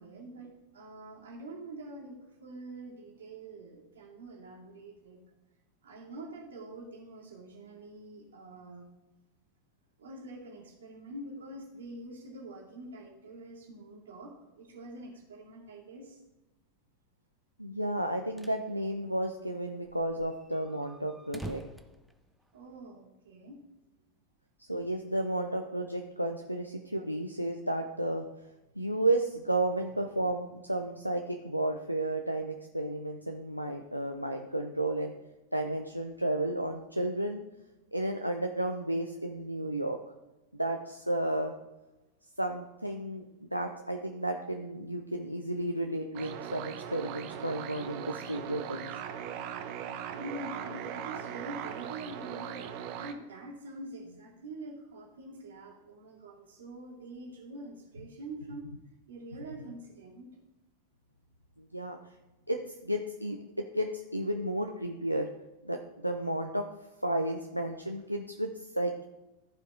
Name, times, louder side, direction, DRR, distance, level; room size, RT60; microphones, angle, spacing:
voice 1, 0.0-5.2 5.8-8.9 10.0-16.2 22.5-23.6 50.1-58.7 59.1-60.4, right 1 dB, 65° right, -2 dB, 2.3 m, -45 dB
voice 2, 17.6-21.6 24.6-28.3 28.8-35.1 35.5-37.4 37.9-40.0 40.5-41.5 42.4-49.0 61.6-62.0 62.5-65.3 65.6-66.7 67.0-69.1, right 1 dB, 90° right, 3 dB, 0.5 m, -32 dB
sound 1, 18.2-18.6 19.0-19.1 19.3-19.4 19.8-22.9, right 2 dB, 5° right, 0.6 m, -47 dB
sound 2, 46.1-53.1, right 9 dB, 45° right, 0.8 m, -39 dB
14.5 x 4.8 x 3.8 m, 1.0 s
figure-of-eight pair, 90°, 0 cm